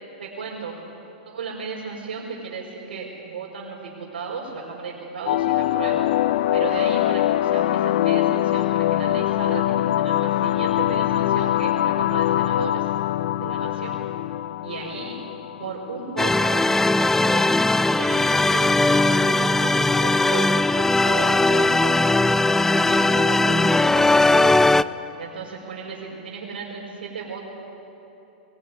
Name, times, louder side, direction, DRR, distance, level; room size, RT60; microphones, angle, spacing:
voice 1, 0.2-0.8 1.2-6.1 6.5-12.9 13.4-14.0 14.6-15.2 15.6-16.6 16.9-17.5 18.0-18.2 18.5-22.1 22.6-24.6 25.2-27.4, right 5 dB, 80° right, -4 dB, 5.5 m, -34 dB
sound 1, 5.3-16.2, left 13 dB, 65° left, 0.5 m, -23 dB
sound 2, 16.2-24.8, left 2 dB, 5° left, 0.5 m, -19 dB
23.0 x 18.0 x 9.9 m, 2.9 s
hypercardioid pair, 115°, 5 cm